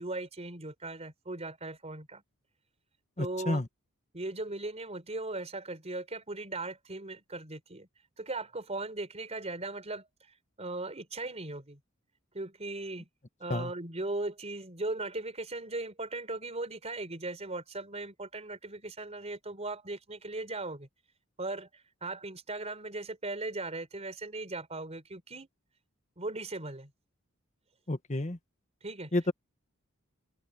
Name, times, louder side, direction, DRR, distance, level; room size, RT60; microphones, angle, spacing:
voice 1, 0.0-2.2 3.2-3.6 4.1-7.9 8.2-10.1 10.6-11.8 12.3-13.1 13.4-20.9 21.4-25.5 26.2-26.9 28.8-29.3, right 2 dB, 30° right, 4.2 m, -38 dB
voice 2, 3.2-3.6 13.5-13.7 27.9-28.4 29.1-29.3, left 2 dB, 35° left, 1.4 m, -30 dB
head